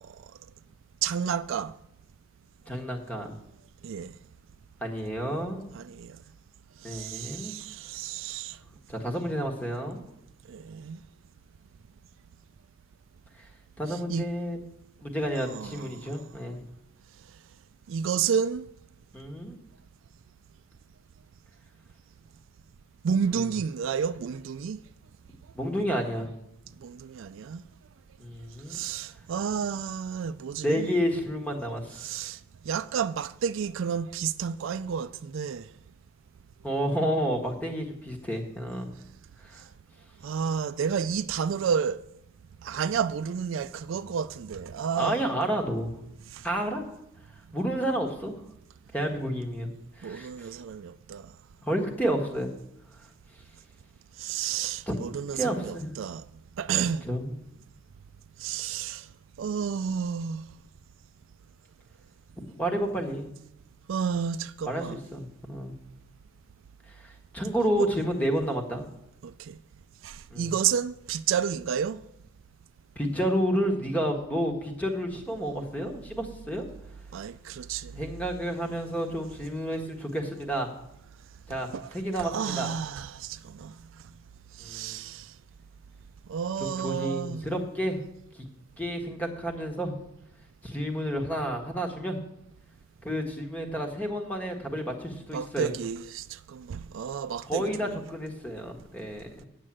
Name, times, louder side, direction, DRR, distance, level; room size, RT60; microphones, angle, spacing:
voice 1, 1.0-1.7 3.8-4.1 5.7-6.2 6.8-8.6 10.5-11.0 13.9-14.3 15.4-16.0 17.9-18.6 23.0-24.8 26.8-27.6 28.7-30.9 32.0-32.4 32.7-35.6 40.2-42.0 42.6-45.2 46.3-46.4 50.0-51.2 54.2-56.2 56.6-57.0 58.4-59.1 59.4-60.5 63.9-65.0 67.8-67.9 69.2-69.6 70.0-72.0 77.1-78.1 81.7-81.9 82.2-83.7 84.6-85.3 86.3-87.7 95.3-98.0, right 7 dB, 65° right, 0.3 m, -31 dB
voice 2, 2.7-3.3 4.8-5.7 6.8-7.6 8.9-10.0 13.8-14.6 15.0-16.6 19.1-19.6 23.3-23.5 25.5-26.3 28.2-28.8 30.6-32.3 36.6-38.9 39.4-39.6 45.0-45.9 46.4-46.8 47.5-48.3 48.9-49.7 50.0-50.5 51.6-52.5 54.9-55.1 55.3-55.9 57.0-57.4 62.5-63.3 64.6-64.9 65.1-65.7 66.9-68.9 70.3-70.5 72.9-76.7 78.0-80.7 81.5-82.7 84.6-85.0 86.6-88.0 88.8-89.9 90.6-92.2 93.0-95.7 97.4-99.5, equal, 5° left, 1.4 m, -30 dB
9.4 x 7.4 x 7.6 m
head